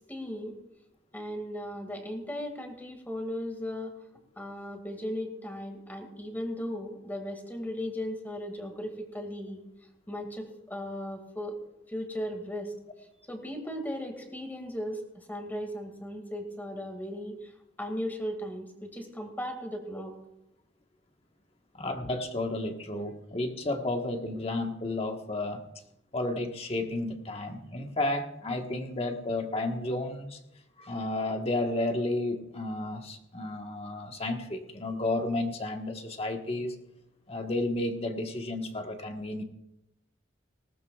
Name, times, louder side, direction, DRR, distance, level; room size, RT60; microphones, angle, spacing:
voice 1, 0.1-0.6 1.1-3.9 4.4-9.6 10.1-11.6 11.9-12.7 13.3-17.5 17.8-20.1, equal, 10° left, 3 dB, 2.2 m, -37 dB
voice 2, 21.7-25.6 26.1-30.4 30.8-36.7 37.3-39.4, left 2 dB, 30° left, 3 dB, 1.4 m, -32 dB
19.5 x 17.5 x 2.4 m, 0.85 s
head